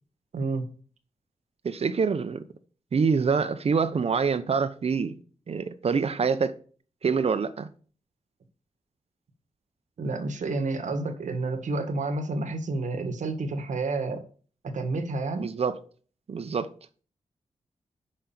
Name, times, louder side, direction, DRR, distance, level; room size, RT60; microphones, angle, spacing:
voice 1, 0.3-0.7 10.0-14.2 14.6-15.5, right 3 dB, 80° right, 1.5 m, -30 dB
voice 2, 1.6-2.4 2.9-5.1 5.5-6.5 7.0-7.7 15.4-15.7 16.3-16.7, right 5 dB, 55° right, 0.8 m, -25 dB
6.3 x 5.8 x 7.0 m
wide cardioid pair, 110°, 12 cm